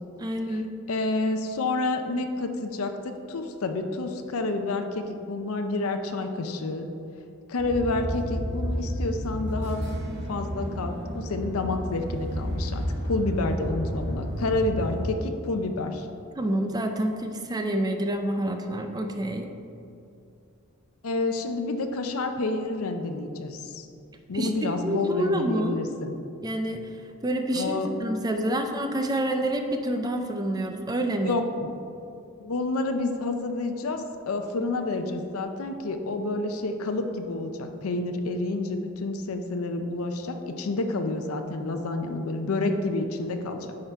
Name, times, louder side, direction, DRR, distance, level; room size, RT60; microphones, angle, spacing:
voice 1, 0.2-0.7 16.4-19.5 24.3-24.5 24.8-25.8 26.4-27.0 27.2-31.4, right 1 dB, 15° right, 5 dB, 0.4 m, -28 dB
voice 2, 0.9-6.9 7.5-9.8 10.3-16.1 21.0-23.9 24.3-26.2 27.5-27.9 31.2-31.7 32.4-43.7, left 2 dB, 75° left, 6 dB, 0.6 m, -29 dB
sound 1, 7.6-15.1, equal, 55° right, 1.5 m, -31 dB
9.6 x 3.8 x 4.5 m, 2.6 s
head